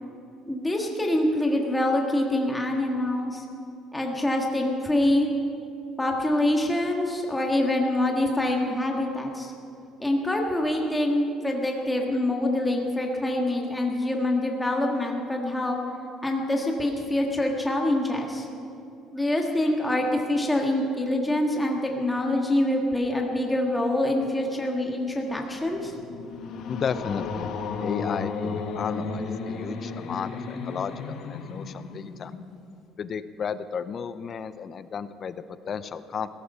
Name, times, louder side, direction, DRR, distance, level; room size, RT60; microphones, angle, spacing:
voice 1, 0.5-3.4 3.9-5.3 6.0-9.5 10.0-15.8 16.2-18.5 19.1-25.9, left 1 dB, 10° left, 1 dB, 1.6 m, -25 dB
sound 1, 25.4-32.7, left 4 dB, 60° left, 1.5 m, -34 dB
voice 2, 26.7-27.6 27.8-32.3 33.0-36.3, left 6 dB, 40° left, 13 dB, 0.6 m, -33 dB
17.0 x 14.0 x 5.5 m, 2.6 s
cardioid pair, 135°, 0 cm